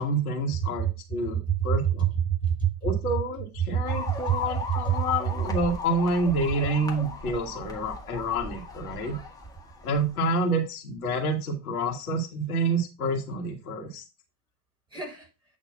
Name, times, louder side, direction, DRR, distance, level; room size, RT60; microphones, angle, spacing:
voice 1, 0.0-2.0 2.8-9.2 9.8-14.0, right 1 dB, 65° left, 1 dB, 1.7 m, -28 dB
voice 2, 0.6-0.9 1.3-2.9 3.7-5.0 14.9-15.3, right 9 dB, 10° right, 0 dB, 3.4 m, -27 dB
sound 1, 3.8-10.2, left 3 dB, 10° left, 1.5 m, -38 dB
8.7 x 3.0 x 5.6 m, 0.27 s
figure-of-eight pair, 80°, 46 cm